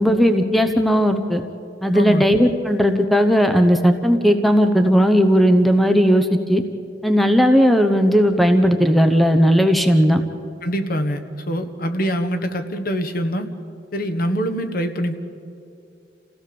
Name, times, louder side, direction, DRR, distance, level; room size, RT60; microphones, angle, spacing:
voice 1, 0.0-1.4 1.8-6.6 7.0-10.2, equal, ahead, 6 dB, 0.9 m, -16 dB
voice 2, 1.9-2.2 10.6-13.5 13.9-15.2, equal, 50° left, 7 dB, 1.5 m, -24 dB
28.5 x 16.5 x 7.0 m, 2.6 s
head